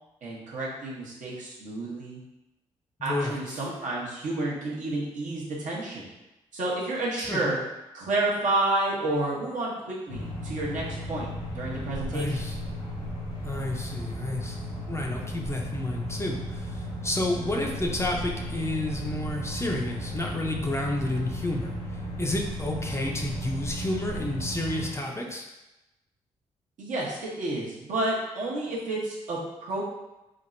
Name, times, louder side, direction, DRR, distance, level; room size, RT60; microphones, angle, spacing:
voice 1, 0.2-2.2 3.0-6.1 6.5-7.6 7.9-11.3 11.5-12.4 26.8-29.9, right 2 dB, 60° right, -4 dB, 0.9 m, -30 dB
voice 2, 3.0-3.6 7.2-7.5 12.1-12.6 13.4-14.6 14.9-21.7 22.2-25.4, left 1 dB, 20° left, 0 dB, 0.5 m, -30 dB
sound 1, 10.1-24.9, equal, 90° left, 0.6 m, -35 dB
3.5 x 2.0 x 2.5 m, 0.98 s
hypercardioid pair, 45°, 14 cm